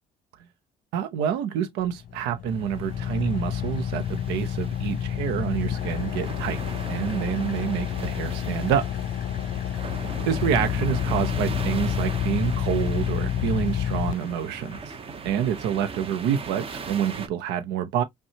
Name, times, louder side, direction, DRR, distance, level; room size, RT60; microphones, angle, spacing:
voice 1, 0.9-6.6 6.9-8.9 10.3-14.9 15.2-18.0, right 9 dB, 90° right, 0.7 m, -27 dB
Car / Idling, 1.8-14.8, left 10 dB, 55° left, 0.4 m, -29 dB
sound 1, 2.5-17.3, right 5 dB, 35° right, 1.0 m, -39 dB
5.5 x 2.2 x 2.7 m
cardioid pair, 110°, 17 cm